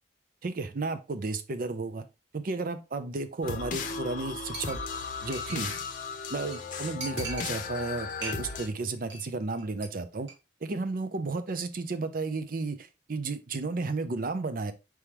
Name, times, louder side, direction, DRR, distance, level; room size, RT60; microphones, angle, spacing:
voice 1, 0.4-2.0 2.3-4.8 5.2-5.7 6.3-10.3 10.6-14.7, right 3 dB, 50° right, 0.5 m, -33 dB
sound 1, 3.4-8.7, left 4 dB, 45° left, 0.7 m, -36 dB
Chink clink, 3.8-4.3 4.5-5.9 6.2-6.3 6.5-6.6 7.0-7.9 8.2-8.7 9.0-9.3 9.5-9.9 10.2-10.3, right 3 dB, 70° right, 1.4 m, -41 dB
4.7 x 3.5 x 2.9 m
head